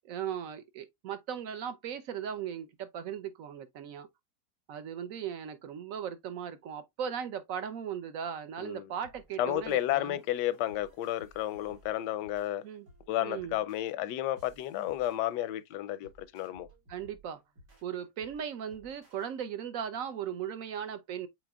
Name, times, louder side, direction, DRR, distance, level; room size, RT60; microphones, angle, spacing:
voice 1, 0.0-4.1 4.7-10.2 12.6-12.9 13.2-13.6 16.9-17.4 17.8-21.3, right 8 dB, 65° right, 0.9 m, -38 dB
sound 1, 9.0-19.3, right 1 dB, 80° right, 3.2 m, -60 dB
voice 2, 9.4-12.6 13.1-16.7, left 13 dB, 85° left, 1.2 m, -32 dB
7.7 x 3.0 x 2.3 m
omnidirectional pair, 1.8 m